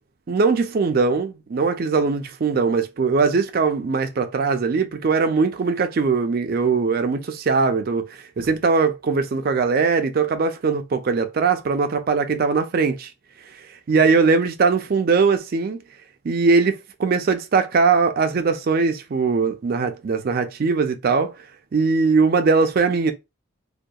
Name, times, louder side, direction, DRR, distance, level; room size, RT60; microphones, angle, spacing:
voice 1, 0.3-13.1 13.9-15.8 16.2-21.3 21.7-23.1, right 4 dB, 45° right, 0.4 m, -20 dB
2.7 x 2.2 x 2.2 m
head